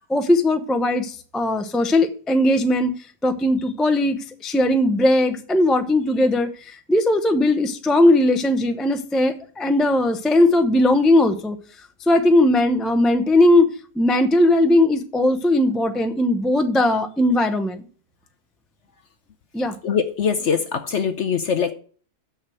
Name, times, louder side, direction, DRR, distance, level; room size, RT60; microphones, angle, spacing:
voice 1, 0.1-2.9 3.2-11.6 12.1-13.7 13.9-17.8 19.5-19.8, left 1 dB, ahead, 7 dB, 0.4 m, -18 dB
voice 2, 19.8-21.7, left 6 dB, 55° left, 8 dB, 0.9 m, -22 dB
7.0 x 6.7 x 7.7 m, 0.43 s
omnidirectional pair, 1.8 m